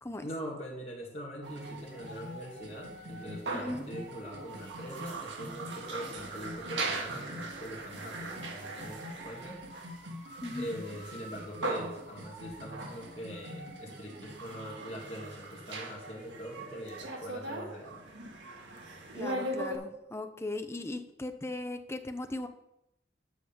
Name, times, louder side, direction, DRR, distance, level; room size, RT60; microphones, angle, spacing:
voice 1, 0.2-9.6 10.6-18.0, equal, 35° left, -4 dB, 2.0 m, -43 dB
sound 1, 1.4-19.8, right 2 dB, 80° right, 1.5 m, -40 dB
voice 2, 19.1-22.5, left 2 dB, 15° left, 8 dB, 0.6 m, -38 dB
7.9 x 4.9 x 7.1 m, 0.85 s
head